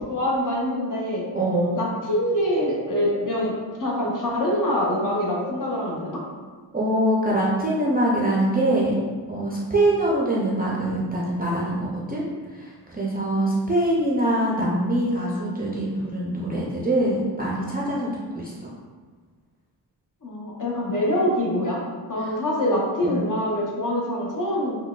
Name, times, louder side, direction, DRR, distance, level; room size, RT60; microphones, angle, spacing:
voice 1, 0.1-1.3 1.7-6.2 20.2-21.8 22.1-24.8, left 1 dB, 45° left, -3 dB, 0.7 m, -25 dB
voice 2, 1.3-1.8 6.7-9.0 9.3-12.3 12.5-18.1 18.3-18.7 23.0-23.2, right 1 dB, 20° right, -5 dB, 0.4 m, -23 dB
3.8 x 2.2 x 2.3 m, 1.4 s
wide cardioid pair, 115°, 44 cm